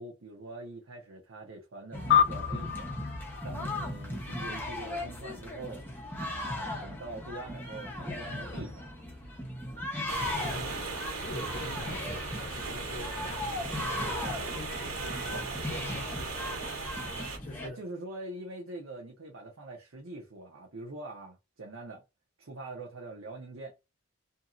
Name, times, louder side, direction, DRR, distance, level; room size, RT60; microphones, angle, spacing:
voice 1, 0.0-3.0 3.4-5.9 6.2-8.9 17.6-22.0 22.4-23.8, right 2 dB, 70° right, 0.8 m, -44 dB
sound 1, 1.9-17.7, left 1 dB, 10° left, 0.8 m, -38 dB
sound 2, 2.1-4.8, left 9 dB, 60° left, 0.3 m, -29 dB
sound 3, 10.1-17.4, right 3 dB, 90° right, 1.2 m, -37 dB
voice 2, 10.3-10.8 11.2-16.6 17.4-17.8, left 2 dB, 40° left, 0.7 m, -45 dB
2.8 x 2.7 x 2.5 m
head